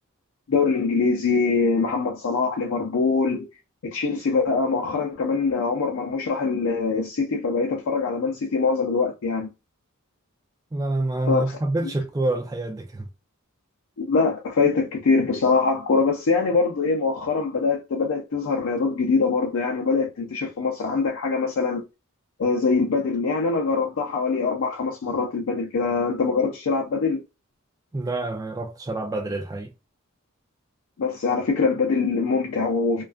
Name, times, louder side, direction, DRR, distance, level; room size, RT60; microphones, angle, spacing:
voice 1, 0.5-3.5 3.8-9.5 11.3-11.9 14.0-21.8 22.4-27.2 31.0-33.0, left 4 dB, 70° left, 0.5 m, -23 dB
voice 2, 10.7-13.1 27.9-29.7, right 2 dB, 15° right, 0.3 m, -27 dB
2.4 x 2.3 x 2.4 m
head